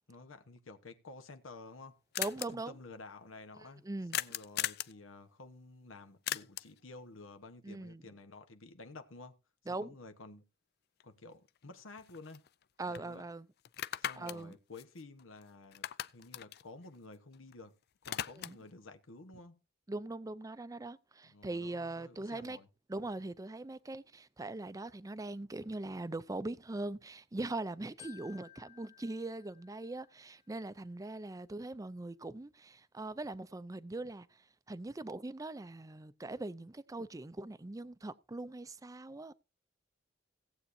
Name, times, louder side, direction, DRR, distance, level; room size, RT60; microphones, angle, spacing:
voice 1, 0.1-3.8 4.1-9.4 9.7-10.5 11.0-12.4 12.9-13.2 14.0-15.8 16.1-17.8 18.1-19.6 21.2-22.7, left 3 dB, 85° left, 1.2 m, -52 dB
sound 1, 1.5-1.6 1.8-1.9 2.1-2.5 4.1-5.0 6.3-6.8 11.0-11.1 11.5-12.6 12.9-13.1 13.6-15.4 15.7-17.5 17.8-18.7, left 12 dB, 55° left, 0.4 m, -39 dB
voice 2, 2.2-2.7 3.8-4.2 7.6-8.0 9.7-9.9 12.8-13.5 14.2-14.5 18.4-18.6 19.9-22.6 22.9-34.3 34.7-39.3, right 2 dB, 15° right, 0.5 m, -41 dB
Glockenspiel, 28.0-30.5, left 11 dB, 40° left, 2.0 m, -58 dB
17.5 x 8.1 x 2.7 m
head